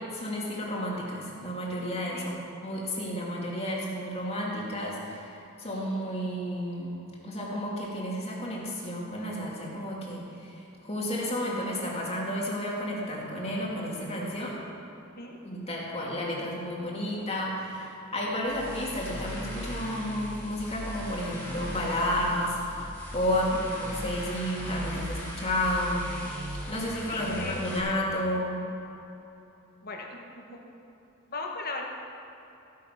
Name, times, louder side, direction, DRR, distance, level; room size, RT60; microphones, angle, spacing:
voice 1, 0.0-14.6 15.4-26.1 26.7-28.6, equal, 30° left, -4 dB, 2.7 m, -32 dB
sound 1, 18.4-27.8, equal, 10° left, 3.4 m, -38 dB
voice 2, 27.1-27.6 29.8-30.6 31.3-31.8, left 3 dB, 45° left, 0 dB, 1.8 m, -38 dB
15.0 x 9.7 x 6.0 m, 3.0 s
head